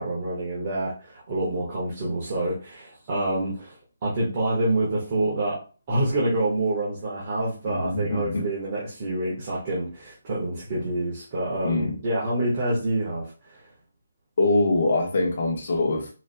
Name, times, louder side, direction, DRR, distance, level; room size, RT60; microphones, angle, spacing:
voice 1, 0.0-3.7 4.0-5.6 5.9-13.6, right 1 dB, 30° right, -6 dB, 1.4 m, -27 dB
voice 2, 7.7-8.4 11.6-11.9 14.4-16.1, left 2 dB, 55° left, 0 dB, 1.3 m, -23 dB
4.8 x 3.1 x 2.3 m, 0.36 s
hypercardioid pair, 160°, 0 cm